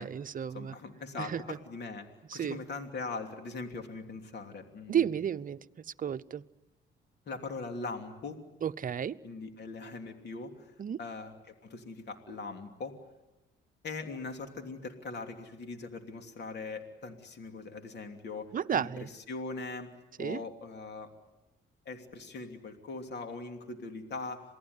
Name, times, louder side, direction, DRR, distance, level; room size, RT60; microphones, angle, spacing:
voice 1, 0.0-0.8 1.2-1.6 2.3-2.6 4.9-6.4 8.6-9.2 10.8-11.0 18.5-19.1 20.2-20.4, right 8 dB, 45° right, 11 dB, 0.8 m, -33 dB
voice 2, 0.5-2.1 2.3-5.1 7.3-8.4 9.2-10.7 11.0-12.9 13.8-18.9 19.3-19.9 20.2-21.1 21.8-24.5, left 3 dB, 60° left, 5 dB, 3.0 m, -41 dB
27.5 x 18.5 x 9.7 m, 1.0 s
cardioid pair, 90°, 20 cm